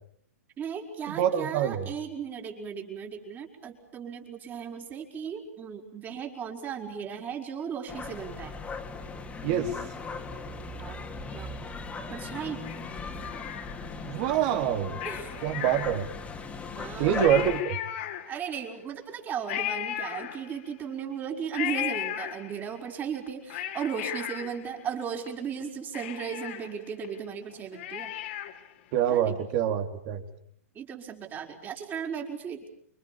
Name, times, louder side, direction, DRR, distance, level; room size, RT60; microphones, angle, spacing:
voice 1, 0.6-8.6 10.8-11.0 11.3-11.5 12.1-12.6 15.0-15.4 16.8-17.6 18.3-28.1 29.1-29.3 30.8-32.7, right 7 dB, 25° right, 3 dB, 5.5 m, -36 dB
voice 2, 1.1-1.9 9.4-9.7 14.1-15.0 15.4-16.1 17.0-17.8 28.9-30.2, right 9 dB, 45° right, 7 dB, 3.9 m, -26 dB
sound 1, 7.9-17.6, left 4 dB, 15° left, 3.3 m, -38 dB
Cat, 12.6-14.1 14.9-16.4 16.8-16.9 17.1-18.6 19.5-20.8 21.5-22.8 23.3-25.3 25.6-25.7 25.9-28.7 29.1-29.2, left 12 dB, 50° left, 3.5 m, -36 dB
29.5 x 25.0 x 7.3 m, 0.64 s
hypercardioid pair, 115°, 8 cm